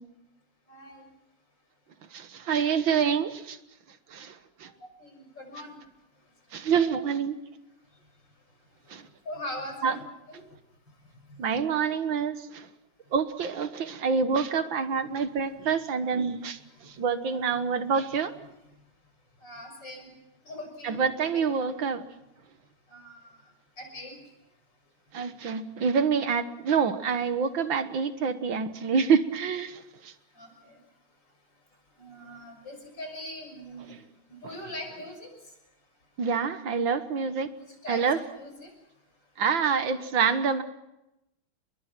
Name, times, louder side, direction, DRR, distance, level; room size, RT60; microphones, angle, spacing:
voice 1, 0.7-1.1 5.0-5.8 9.3-10.4 11.3-11.4 17.5-17.6 19.4-20.1 20.4-21.7 22.9-23.4 23.8-24.2 30.3-30.8 32.0-34.0 34.3-35.3 37.5-38.7, left 1 dB, 60° left, 3 dB, 7.0 m, -41 dB
voice 2, 2.1-3.6 4.1-4.4 4.6-4.7 6.5-7.4 8.9-9.0 9.8-9.9 11.4-12.7 13.1-18.3 20.8-22.0 25.1-30.1 36.2-37.5 37.9-38.2 39.4-40.6, right 6 dB, 70° right, 10 dB, 2.0 m, -27 dB
29.0 x 22.5 x 6.0 m, 0.90 s
omnidirectional pair, 2.2 m